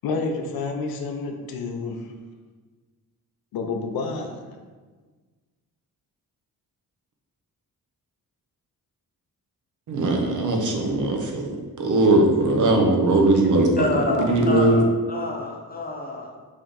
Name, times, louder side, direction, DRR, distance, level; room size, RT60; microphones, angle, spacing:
voice 1, 0.0-2.1 3.5-4.6, left 4 dB, 90° left, 3 dB, 0.5 m, -29 dB
voice 2, 9.9-11.5 11.8-13.8 14.3-14.8, right 2 dB, 60° right, 2 dB, 0.7 m, -19 dB
voice 3, 13.8-16.4, left 2 dB, 25° left, 0 dB, 0.6 m, -28 dB
3.4 x 2.5 x 3.9 m, 1.4 s
wide cardioid pair, 110°, 35 cm